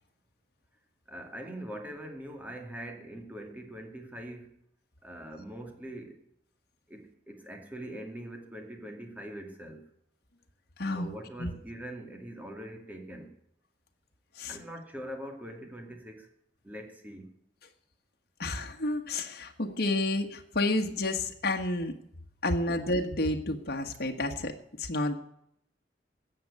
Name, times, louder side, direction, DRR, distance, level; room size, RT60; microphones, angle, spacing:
voice 1, 1.1-4.6 5.0-6.2 6.9-9.9 11.0-13.4 14.5-16.3 16.6-17.3 22.7-22.8, right 1 dB, 10° right, 3 dB, 2.3 m, -43 dB
voice 2, 10.8-11.1 11.4-11.5 14.3-14.6 18.4-21.9 22.4-25.2, left 2 dB, 60° left, 3 dB, 1.5 m, -30 dB
15.0 x 8.0 x 8.7 m, 0.72 s
head